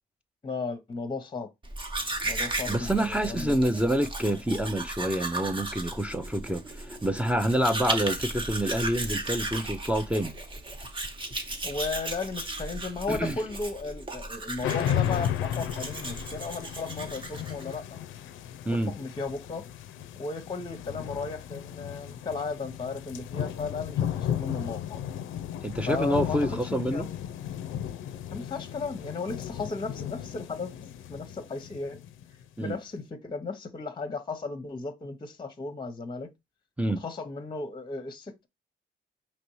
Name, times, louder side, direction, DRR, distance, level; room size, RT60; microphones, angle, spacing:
voice 1, 0.4-1.5 2.2-3.6 11.6-18.0 18.7-19.6 20.2-25.0 25.9-27.1 28.3-30.7 31.1-32.0 32.6-36.3 36.9-38.5, left 4 dB, 25° left, 0.8 m, -35 dB
Domestic sounds home sounds, 1.6-17.7, right 2 dB, 25° right, 0.9 m, -35 dB
voice 2, 2.7-10.3 13.1-13.4 18.7-18.9 25.6-27.1 32.6-32.7 36.8-37.0, right 1 dB, 5° right, 0.5 m, -27 dB
sound 1, 14.6-32.4, left 10 dB, 80° left, 0.5 m, -34 dB
5.1 x 3.0 x 3.0 m
cardioid pair, 90°, 20 cm